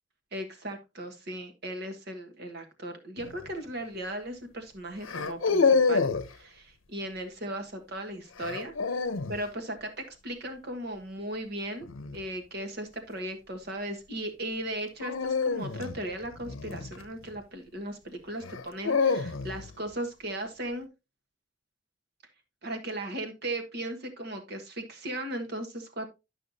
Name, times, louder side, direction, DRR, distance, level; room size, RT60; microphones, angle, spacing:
voice 1, 0.3-8.7 9.3-11.9 12.1-20.9 22.6-26.0, right 1 dB, 50° right, 5 dB, 1.4 m, -37 dB
sound 1, 3.2-3.5 5.0-6.3 8.4-9.4 11.8-12.2 15.0-17.4 18.4-19.7, left 4 dB, 80° left, 0.7 m, -27 dB
11.0 x 5.6 x 2.7 m, 0.25 s
head